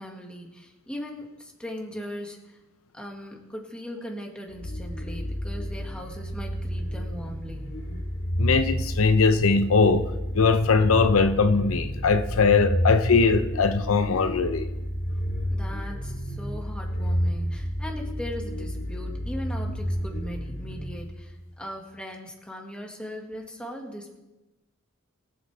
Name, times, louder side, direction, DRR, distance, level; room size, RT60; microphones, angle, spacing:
voice 1, 0.0-2.6 2.9-7.7 15.5-24.2, equal, 5° left, 1.7 m, -39 dB
sound 1, 4.5-21.4, equal, 60° left, 2.6 m, -31 dB
voice 2, 8.4-14.7, left 4 dB, 80° left, 0.7 m, -21 dB
22.5 x 7.8 x 3.3 m
head